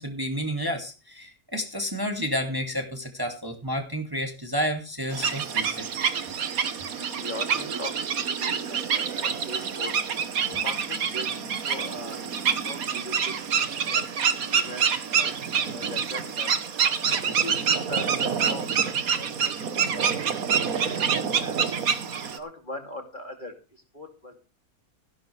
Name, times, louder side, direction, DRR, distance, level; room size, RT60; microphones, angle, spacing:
voice 1, 0.0-5.9, equal, 15° right, 4 dB, 2.3 m, -30 dB
sound 1, 5.1-22.4, right 7 dB, 70° right, 1.7 m, -27 dB
voice 2, 6.8-10.0 10.4-12.2 12.6-13.4 13.8-16.6 17.1-21.8 22.4-24.4, left 1 dB, 30° left, 4 dB, 2.9 m, -41 dB
15.5 x 11.5 x 3.3 m, 0.31 s
omnidirectional pair, 1.5 m